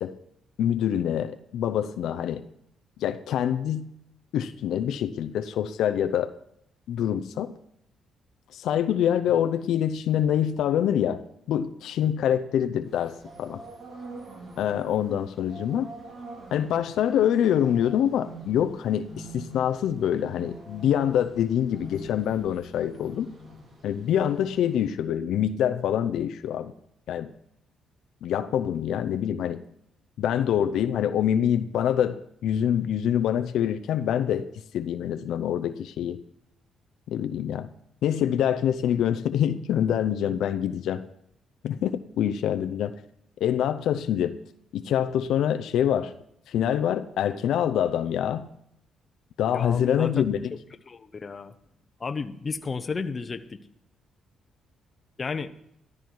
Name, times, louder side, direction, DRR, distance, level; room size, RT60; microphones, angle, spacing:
voice 1, 0.6-2.4 3.0-3.9 4.3-6.3 6.9-7.5 8.5-11.2 11.5-13.6 14.6-15.9 16.5-23.3 23.8-26.7 27.1-27.3 28.2-29.6 30.2-34.5 34.7-36.2 37.1-37.7 38.0-41.0 41.6-42.9 43.4-44.4 44.7-46.1 46.5-48.5 49.4-50.5, left 9 dB, 80° left, 9 dB, 0.7 m, -25 dB
sound 1, 12.8-24.9, right 1 dB, 55° right, 4.1 m, -45 dB
voice 2, 49.5-50.3 50.9-51.5 52.0-53.6 55.2-55.5, left 4 dB, 35° left, 9 dB, 0.9 m, -32 dB
13.5 x 13.0 x 4.7 m, 0.74 s
cardioid pair, 90°, 0 cm